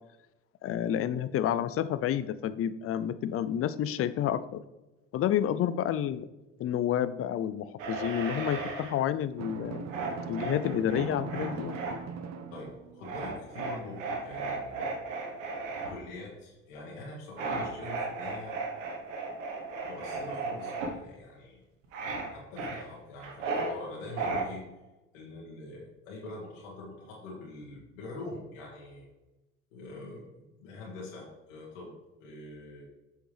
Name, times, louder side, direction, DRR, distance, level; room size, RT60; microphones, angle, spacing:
voice 1, 0.6-4.6 5.1-6.3 6.6-9.9 10.3-11.8, left 10 dB, 35° left, 13 dB, 0.5 m, -29 dB
sound 1, 7.8-9.0 9.9-11.9 13.0-15.9 17.4-20.9 21.9-22.3 22.6-23.7 24.2-24.4, right 3 dB, 80° right, 1.3 m, -35 dB
Drum, 9.4-13.2, right 6 dB, 45° right, 0.8 m, -40 dB
voice 2, 12.5-14.9 15.9-18.6 19.8-21.6 22.3-24.6 25.1-29.1 29.7-31.9 32.2-32.8, left 2 dB, 80° left, -3 dB, 1.7 m, -44 dB
7.7 x 6.4 x 3.4 m, 1.1 s
hypercardioid pair, 60°, 38 cm